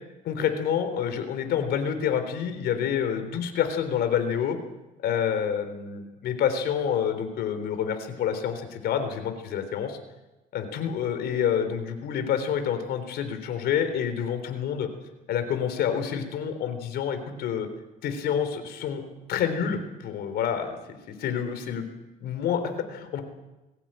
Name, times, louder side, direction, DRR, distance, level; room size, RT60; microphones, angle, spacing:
voice 1, 0.2-4.6 5.0-10.0 10.5-14.9 15.3-17.7 18.0-20.7 21.1-21.8 22.2-23.2, left 8 dB, 70° left, 8 dB, 3.7 m, -28 dB
21.5 x 16.5 x 8.9 m, 1.1 s
cardioid pair, 110°, 17 cm